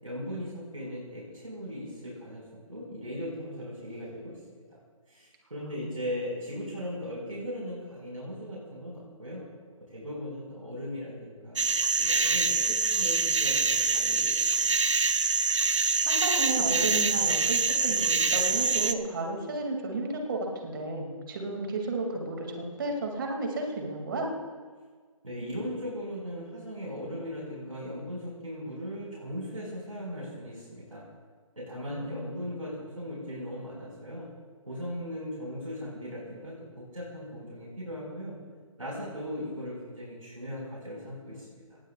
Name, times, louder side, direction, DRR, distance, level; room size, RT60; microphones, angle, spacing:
voice 1, 0.0-4.8 5.1-9.4 9.8-14.8 25.2-31.0 31.6-34.3 34.7-38.4 38.8-41.8, equal, 75° right, -4 dB, 5.9 m, -38 dB
voice 2, 5.6-5.9 16.0-24.3 31.9-32.4, right 2 dB, 40° right, 2 dB, 2.7 m, -33 dB
sound 1, 11.6-18.9, right 4 dB, 60° right, 1.1 m, -25 dB
25.5 x 20.0 x 2.5 m, 1.5 s
figure-of-eight pair, 145°, 18 cm